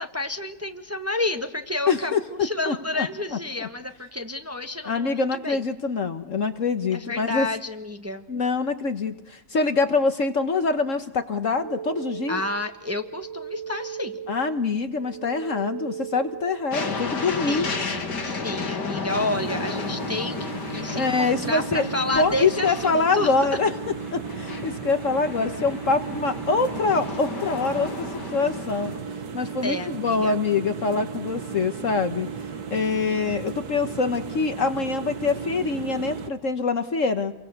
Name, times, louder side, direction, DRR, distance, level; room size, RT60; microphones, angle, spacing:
voice 1, 0.0-5.6 6.9-8.2 12.3-14.2 17.2-23.3 29.6-30.3, left 2 dB, 10° right, 6 dB, 1.3 m, -30 dB
voice 2, 1.9-2.2 2.7-3.1 4.8-7.5 8.3-12.4 14.3-17.7 20.9-21.9 22.2-28.9 29.3-32.3 32.7-37.3, left 4 dB, 50° left, 9 dB, 1.4 m, -25 dB
sound 1, 11.6-17.1, right 9 dB, 45° right, 1.4 m, -38 dB
sound 2, 16.7-29.0, left 4 dB, 75° left, 2.9 m, -33 dB
sound 3, 19.1-36.3, right 5 dB, 65° right, 1.9 m, -35 dB
29.0 x 23.5 x 6.6 m, 0.92 s
omnidirectional pair, 1.8 m